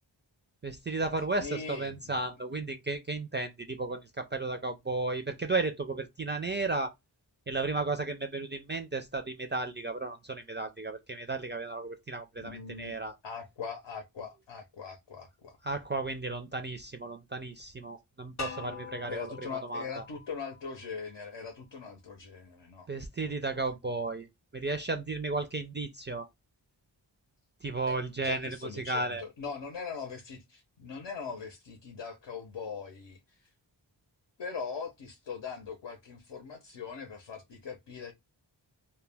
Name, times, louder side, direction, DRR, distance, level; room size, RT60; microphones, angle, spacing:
voice 1, 0.6-6.9 7.5-13.1 15.6-19.3 19.7-20.0 22.9-24.3 24.5-26.3 27.6-29.2, right 3 dB, 25° right, 0.3 m, -34 dB
voice 2, 1.4-2.3 12.4-12.9 13.2-15.6 19.1-22.9 23.2-23.7 27.9-33.5 34.4-38.1, left 5 dB, 75° left, 0.7 m, -41 dB
sound 1, 18.4-21.3, left 4 dB, 40° left, 0.6 m, -44 dB
2.1 x 2.1 x 3.2 m
wide cardioid pair, 55°, 45 cm